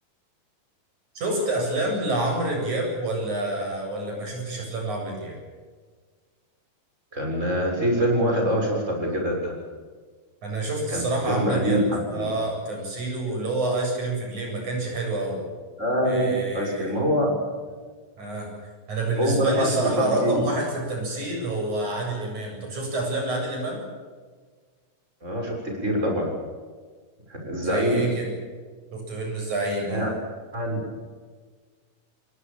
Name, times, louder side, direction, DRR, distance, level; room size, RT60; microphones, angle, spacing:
voice 1, 1.2-5.4 10.4-15.4 16.0-16.9 18.2-23.8 27.6-28.3 28.9-30.1, right 2 dB, 75° right, 1 dB, 9.4 m, -28 dB
voice 2, 7.1-9.5 10.9-12.3 15.8-17.4 19.2-20.5 25.2-26.3 27.3-28.0 29.9-30.1 30.5-30.9, equal, 20° right, 1 dB, 7.2 m, -24 dB
29.5 x 19.5 x 7.4 m, 1.5 s
omnidirectional pair, 3.4 m